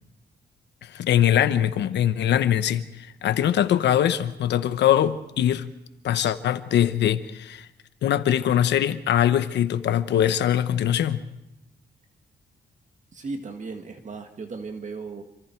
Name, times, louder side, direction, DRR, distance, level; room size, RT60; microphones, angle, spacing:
voice 1, 0.8-5.7 6.0-7.7 8.0-11.2, left 10 dB, 90° left, 1.1 m, -22 dB
voice 2, 13.1-15.2, right 4 dB, 45° right, 1.8 m, -36 dB
27.5 x 25.5 x 4.6 m
cardioid pair, 105°, 18 cm